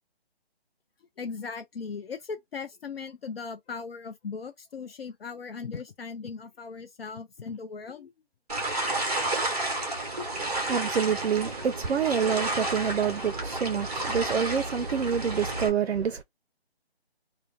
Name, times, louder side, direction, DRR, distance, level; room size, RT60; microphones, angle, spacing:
voice 1, 1.2-8.1, left 5 dB, 70° left, 0.6 m, -38 dB
sound 1, 8.5-15.7, right 2 dB, 40° right, 1.0 m, -31 dB
voice 2, 10.3-16.2, right 7 dB, 80° right, 0.6 m, -27 dB
2.7 x 2.0 x 2.4 m
hypercardioid pair, 175°, 31 cm